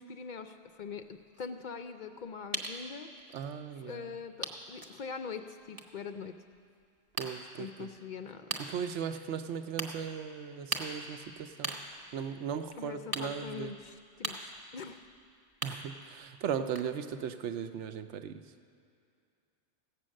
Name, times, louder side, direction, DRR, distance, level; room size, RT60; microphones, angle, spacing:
voice 1, 0.0-3.1 3.8-6.4 7.6-8.6 12.8-15.1, left 5 dB, 55° left, 8 dB, 0.5 m, -43 dB
sound 1, 0.9-3.5 4.1-4.2 4.4-5.1 5.6-6.1 6.5-7.3 8.0-8.1 8.5-8.6 9.4-9.5 9.8-9.9 10.7-16.3 16.5-16.9, right 2 dB, 20° right, 0.9 m, -40 dB
voice 2, 3.3-4.1 7.2-7.9 8.7-11.8 12.1-13.7 15.6-18.4, right 7 dB, 75° right, 9 dB, 0.9 m, -37 dB
15.5 x 8.4 x 6.4 m, 2.4 s
omnidirectional pair, 1.2 m